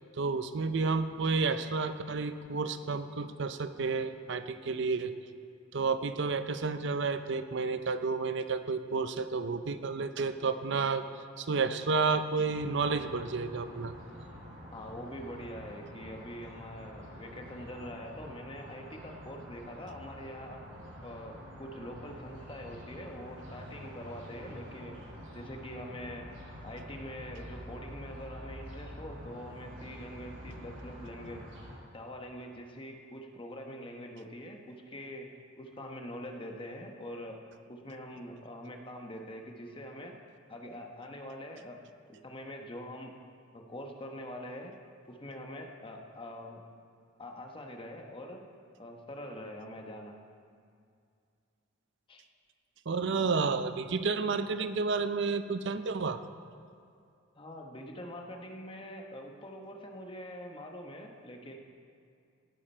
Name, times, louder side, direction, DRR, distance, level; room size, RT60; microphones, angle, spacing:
voice 1, 0.1-5.1 5.7-11.1 11.4-13.9 52.9-56.2, right 4 dB, 65° right, 10 dB, 0.6 m, -31 dB
sound 1, 12.5-31.8, equal, 80° right, 4.0 m, -47 dB
voice 2, 14.7-20.6 21.0-25.0 25.3-26.3 26.6-31.5 31.9-37.4 37.7-40.1 40.5-41.8 42.1-43.1 43.5-44.7 45.1-46.6 47.2-48.5 48.8-50.2 52.1-52.2 57.3-61.6, equal, 25° left, 2 dB, 1.1 m, -44 dB
17.5 x 9.8 x 4.4 m, 2.4 s
head